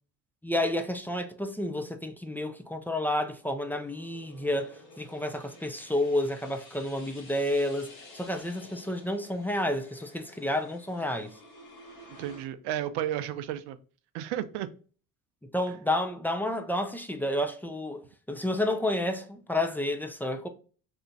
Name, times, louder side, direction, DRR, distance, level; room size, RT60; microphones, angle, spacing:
voice 1, 0.4-11.3 15.5-18.0 18.3-20.5, left 1 dB, 5° left, 0.4 m, -30 dB
sound 1, 2.4-12.5, left 2 dB, 55° left, 1.4 m, -52 dB
voice 2, 12.2-13.8 14.1-14.7, right 12 dB, 70° right, 0.5 m, -32 dB
2.8 x 2.5 x 3.4 m
hypercardioid pair, 65°, 43 cm